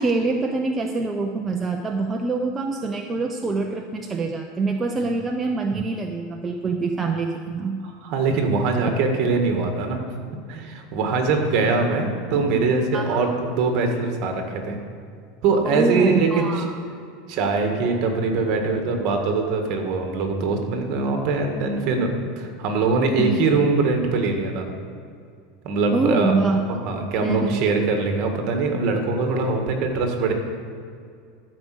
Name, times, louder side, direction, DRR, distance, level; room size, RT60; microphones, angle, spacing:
voice 1, 0.0-7.8 12.9-13.3 15.6-16.7 23.2-23.4 25.9-26.6 27.2-27.6, right 3 dB, 15° right, 2 dB, 0.6 m, -25 dB
voice 2, 8.0-10.0 10.5-14.8 15.4-16.6 17.3-24.7 25.6-26.3 26.7-30.3, right 4 dB, 45° right, 4 dB, 1.7 m, -22 dB
12.5 x 5.1 x 7.7 m, 2.3 s
supercardioid pair, 160°, 0 cm